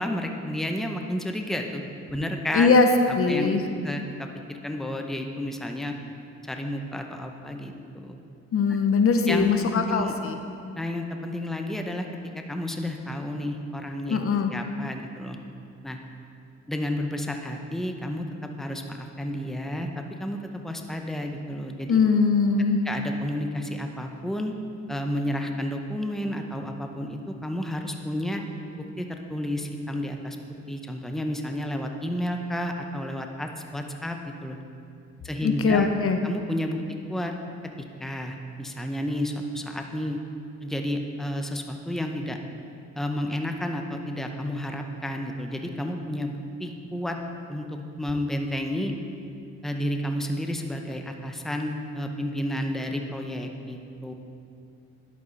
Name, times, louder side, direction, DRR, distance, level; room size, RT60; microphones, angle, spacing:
voice 1, 0.0-1.8 2.1-2.7 3.1-3.6 3.8-5.9 6.4-8.2 9.3-9.5 9.7-10.1 10.8-12.1 12.3-14.2 14.5-15.4 15.8-16.0 16.7-22.0 22.8-24.5 24.9-28.4 29.0-30.4 30.7-34.6 35.2-35.9 36.2-36.8 37.1-37.3 38.0-40.2 40.6-42.4 43.0-47.2 47.5-47.7 48.0-48.9 49.6-54.1, left 1 dB, ahead, 4 dB, 0.7 m, -31 dB
voice 2, 2.5-2.9 3.2-3.6 8.5-10.4 14.1-14.5 21.9-22.8 35.4-36.2, left 5 dB, 45° left, 6 dB, 0.7 m, -21 dB
10.5 x 8.3 x 4.1 m, 2.5 s
cardioid pair, 90°, 30 cm